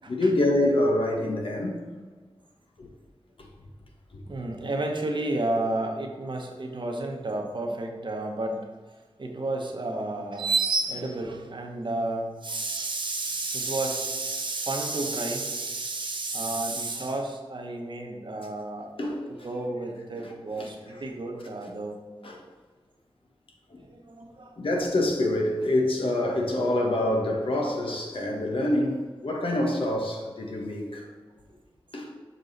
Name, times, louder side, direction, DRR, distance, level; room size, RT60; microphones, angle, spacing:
voice 1, 0.1-1.9 2.8-2.9 3.4-3.5 4.1-4.2 19.0-19.5 20.2-21.0 22.2-22.4 24.6-31.1 31.9-32.1, left 1 dB, 65° left, 0 dB, 1.4 m, -26 dB
voice 2, 4.3-8.6 9.2-18.9 19.4-22.0 23.8-24.6, right 2 dB, 55° right, 2 dB, 1.2 m, -31 dB
6.8 x 5.3 x 4.2 m, 1.4 s
wide cardioid pair, 60°, 10 cm